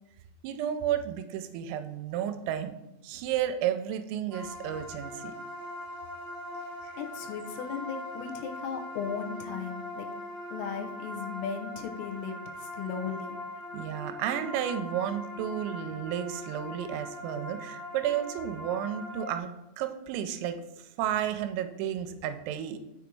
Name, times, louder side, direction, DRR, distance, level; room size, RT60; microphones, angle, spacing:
voice 1, 0.4-2.7 3.0-5.3 6.8-6.9 13.7-19.5 19.8-22.8, right 10 dB, 85° right, 8 dB, 3.3 m, -32 dB
sound 1, 4.3-19.4, left 1 dB, 70° right, 0.7 m, -41 dB
voice 2, 7.0-10.1 10.5-13.4, left 6 dB, 80° left, 3 dB, 3.4 m, -36 dB
7.0 x 6.1 x 4.6 m, 0.89 s
omnidirectional pair, 5.9 m